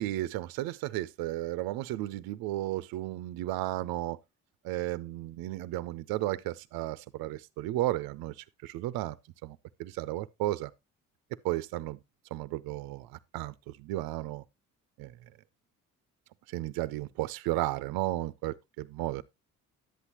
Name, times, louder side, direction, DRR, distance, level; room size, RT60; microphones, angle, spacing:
voice 1, 0.0-4.2 4.6-8.3 8.6-9.2 9.4-10.7 11.4-12.0 12.3-14.4 15.0-15.1 16.5-19.2, right 16 dB, 80° right, 0.5 m, -33 dB
10.5 x 8.3 x 2.8 m
supercardioid pair, 60°, 35 cm